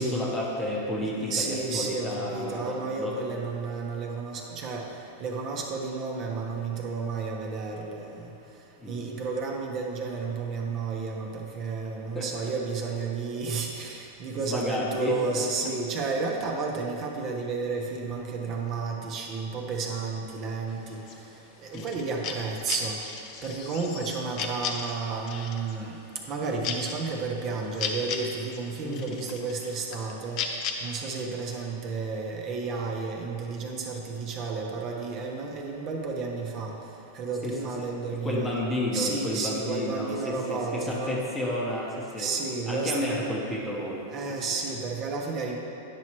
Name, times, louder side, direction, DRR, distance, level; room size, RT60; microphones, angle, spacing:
voice 1, 0.0-3.2 8.8-9.1 12.1-12.3 14.3-15.8 21.7-21.9 28.8-29.2 37.4-42.3 42.7-44.4, left 1 dB, 10° left, -5 dB, 1.0 m, -31 dB
voice 2, 1.0-4.9 5.2-8.3 8.9-21.0 21.6-23.0 23.4-26.0 26.3-30.4 30.8-36.7 37.1-38.6 38.9-41.2 42.2-43.1 44.1-45.6, right 4 dB, 40° right, 0 dB, 1.0 m, -32 dB
sound 1, 20.7-30.7, left 6 dB, 45° left, 0.6 m, -36 dB
9.6 x 6.1 x 3.1 m, 2.8 s
hypercardioid pair, 130°, 0 cm